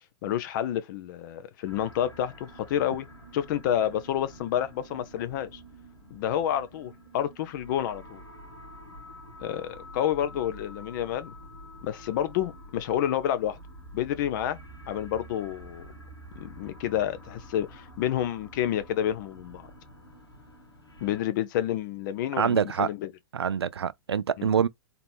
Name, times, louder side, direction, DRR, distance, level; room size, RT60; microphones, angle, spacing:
voice 1, 0.2-3.1 3.3-5.6 6.1-8.2 9.4-11.3 11.8-13.6 13.9-14.6 14.9-15.9 16.4-19.7 21.0-23.1 24.4-24.5, left 10 dB, 50° left, 0.8 m, -29 dB
sound 1, 1.7-21.2, equal, 85° left, 1.7 m, -48 dB
voice 2, 22.4-22.9 23.3-24.7, right 7 dB, 80° right, 0.4 m, -25 dB
3.9 x 2.9 x 3.6 m
figure-of-eight pair, 110°, 13 cm